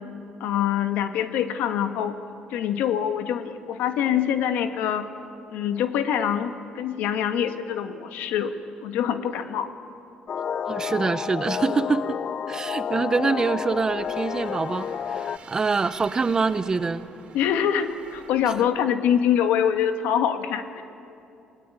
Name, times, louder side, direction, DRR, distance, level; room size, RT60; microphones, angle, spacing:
voice 1, 0.4-2.1 2.5-5.1 5.5-8.5 8.8-9.7 17.3-20.8, left 9 dB, 90° left, 8 dB, 1.7 m, -24 dB
sound 1, 10.3-15.4, left 7 dB, 45° left, 0.5 m, -30 dB
voice 2, 10.7-12.2 12.5-17.1, right 4 dB, 25° right, 13 dB, 0.8 m, -25 dB
sound 2, 13.3-18.7, right 5 dB, 45° right, 2.9 m, -47 dB
28.0 x 19.0 x 9.2 m, 2.7 s
cardioid pair, 125°, 3 cm